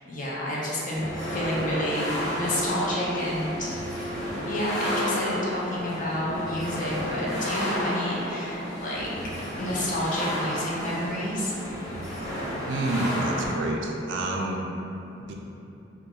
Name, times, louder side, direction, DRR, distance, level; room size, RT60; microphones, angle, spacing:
voice 1, 0.0-3.8 4.5-9.1 9.6-11.5, equal, 45° left, -6 dB, 0.5 m, -29 dB
sound 1, 0.9-13.5, equal, 90° left, 1.4 m, -32 dB
voice 2, 12.7-14.6 15.3-15.4, right 2 dB, 80° right, 0 dB, 0.3 m, -28 dB
2.3 x 2.3 x 2.8 m, 2.8 s
head